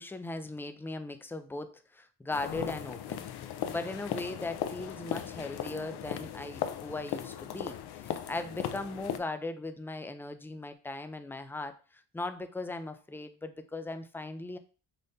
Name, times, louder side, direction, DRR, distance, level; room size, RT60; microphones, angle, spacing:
voice 1, 0.0-14.6, left 2 dB, 5° left, 9 dB, 0.3 m, -39 dB
sound 1, 2.3-9.2, left 10 dB, 60° left, 0.5 m, -37 dB
5.2 x 2.1 x 2.7 m, 0.34 s
supercardioid pair, 65°, 44 cm